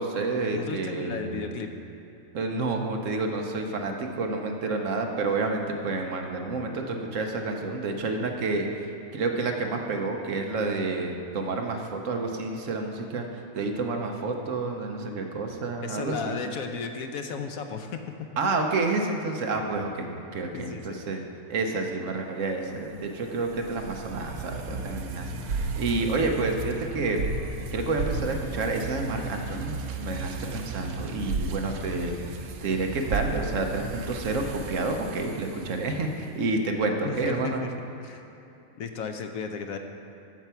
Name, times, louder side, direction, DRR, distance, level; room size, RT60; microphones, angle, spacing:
voice 1, 0.0-1.6 2.3-8.9 9.1-13.3 13.5-16.3 18.4-20.1 20.3-21.2 21.5-27.2 27.7-32.1 32.6-37.6, right 3 dB, 65° right, 3 dB, 1.2 m, -29 dB
voice 2, 0.5-1.7 15.8-18.0 20.5-21.0 37.0-37.7 38.0-38.2 38.8-39.8, left 5 dB, 75° left, 6 dB, 1.1 m, -34 dB
sound 1, 22.7-36.1, right 3 dB, 85° right, 1.2 m, -34 dB
13.5 x 4.6 x 5.7 m, 2.9 s
omnidirectional pair, 1.5 m